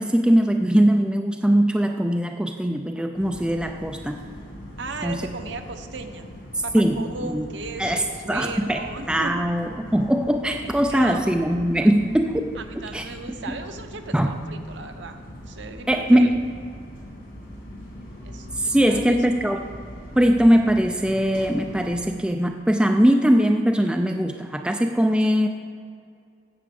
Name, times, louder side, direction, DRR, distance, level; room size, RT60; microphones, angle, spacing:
voice 1, 0.0-4.3 5.0-5.3 6.7-7.5 7.8-12.4 12.9-13.0 14.1-14.3 15.9-16.4 18.6-19.7 20.2-25.5, equal, 5° right, 4 dB, 0.3 m, -21 dB
sound 1, 3.1-22.1, equal, 60° left, 2.5 m, -41 dB
voice 2, 4.8-6.3 6.6-9.4 10.9-11.3 12.5-16.4 18.2-19.3, right 3 dB, 65° right, 6 dB, 0.8 m, -36 dB
9.1 x 7.7 x 5.2 m, 2.4 s
head